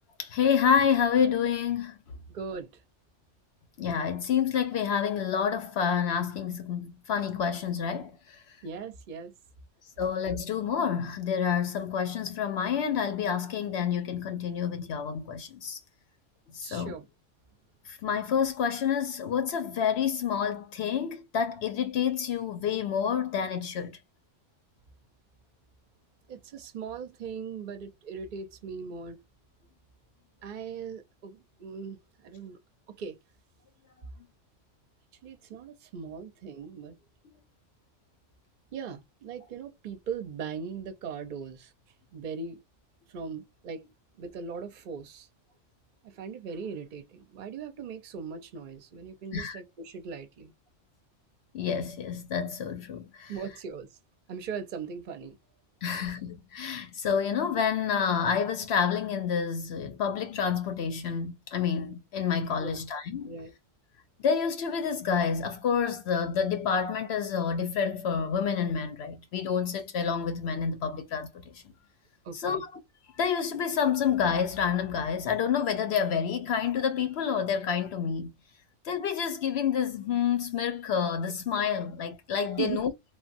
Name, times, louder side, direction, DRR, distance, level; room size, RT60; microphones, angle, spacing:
voice 1, 0.2-2.0 3.8-8.6 10.0-15.8 16.5-17.0 17.9-24.0 49.3-49.6 51.5-53.4 55.8-63.3 64.2-71.6 72.3-72.8 73.2-78.3 78.8-82.9, left 7 dB, 65° left, 0.7 m, -28 dB
voice 2, 2.3-2.8 8.6-9.3 16.6-17.1 26.3-29.2 30.4-32.6 32.9-33.2 35.2-37.0 38.7-41.7 42.1-42.6 43.1-43.8 44.2-45.3 46.0-50.5 53.3-53.9 54.3-55.4 56.0-56.1 62.6-62.8 63.2-63.5 72.2-72.6 82.6-82.8, right 6 dB, 50° right, 0.7 m, -39 dB
3.5 x 2.2 x 2.5 m
omnidirectional pair, 1.3 m